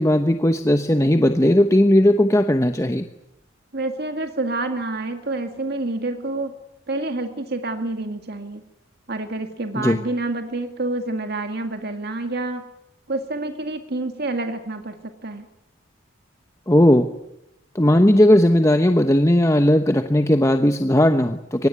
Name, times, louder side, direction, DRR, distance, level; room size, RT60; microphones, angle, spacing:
voice 1, 0.0-3.0 9.7-10.0 16.7-17.1 17.7-21.7, left 1 dB, 15° left, 7 dB, 1.0 m, -17 dB
voice 2, 3.7-6.5 6.9-8.6 9.1-12.7 13.1-15.0 15.2-15.5, right 2 dB, 50° right, 6 dB, 2.0 m, -28 dB
24.5 x 20.0 x 9.5 m, 0.86 s
head